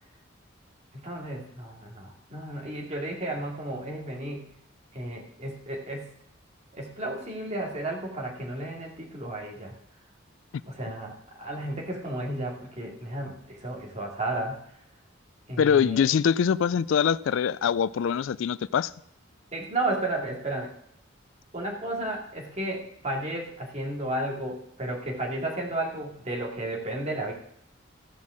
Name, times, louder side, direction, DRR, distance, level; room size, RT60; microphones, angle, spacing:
voice 1, 0.9-4.4 4.9-6.1 6.7-9.7 10.7-14.6 15.5-16.1 19.5-20.7 21.5-27.3, right 1 dB, 35° right, 2.5 m, -33 dB
voice 2, 15.6-18.9, left 7 dB, 70° left, 0.3 m, -23 dB
15.0 x 5.5 x 6.3 m
head